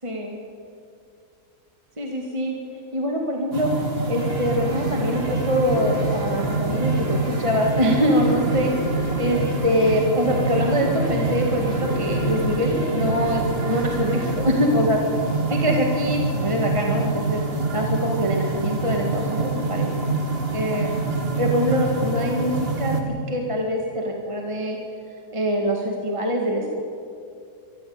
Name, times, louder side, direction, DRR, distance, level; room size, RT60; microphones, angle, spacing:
voice 1, 0.0-0.4 2.0-2.6 2.9-3.7 4.1-15.0 15.5-17.4 17.7-19.9 20.5-20.9 21.4-24.8 25.3-26.8, equal, 20° right, 1 dB, 1.9 m, -24 dB
sound 1, 3.5-23.0, right 3 dB, 35° right, 2.0 m, -26 dB
sound 2, 4.2-15.4, equal, 65° right, 5.2 m, -34 dB
23.5 x 13.5 x 8.9 m, 2.5 s
omnidirectional pair, 1.7 m